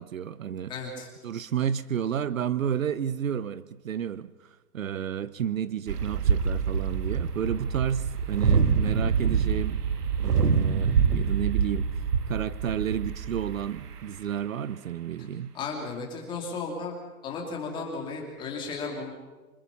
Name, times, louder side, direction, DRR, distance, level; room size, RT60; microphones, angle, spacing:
voice 1, 0.0-0.7 1.2-9.8 10.2-11.9 12.3-15.5, right 9 dB, 60° right, 16 dB, 0.9 m, -31 dB
voice 2, 0.7-1.1 15.5-17.0 17.2-19.1, left 4 dB, 10° left, 0 dB, 3.0 m, -34 dB
sound 1, 5.9-14.0, right 6 dB, 90° right, 1.8 m, -26 dB
26.0 x 20.5 x 7.2 m, 1.2 s
hypercardioid pair, 175°, 46 cm